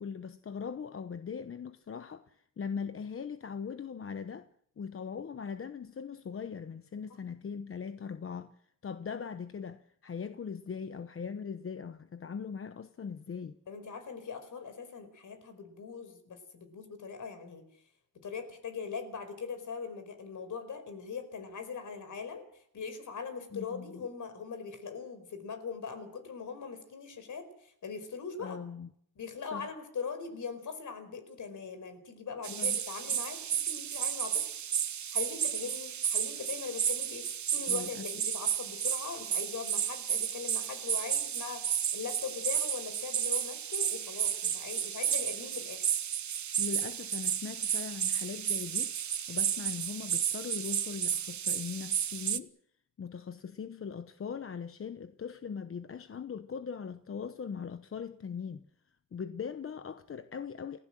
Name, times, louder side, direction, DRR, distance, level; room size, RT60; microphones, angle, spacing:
voice 1, 0.0-4.5 4.8-8.5 8.8-13.6 23.5-24.1 28.4-28.9 29.5-29.7 32.5-32.8 33.1-33.2 37.7-38.1 46.6-49.0 49.3-52.5 53.0-58.7 59.1-60.8, left 6 dB, 40° left, 0.9 m, -40 dB
voice 2, 13.7-17.6 18.2-22.4 22.7-28.6 29.2-34.5 35.1-45.8, left 6 dB, 55° left, 4.7 m, -41 dB
sound 1, 32.4-52.4, right 9 dB, 55° right, 1.2 m, -32 dB
29.0 x 16.0 x 7.7 m
wide cardioid pair, 150°, 35 cm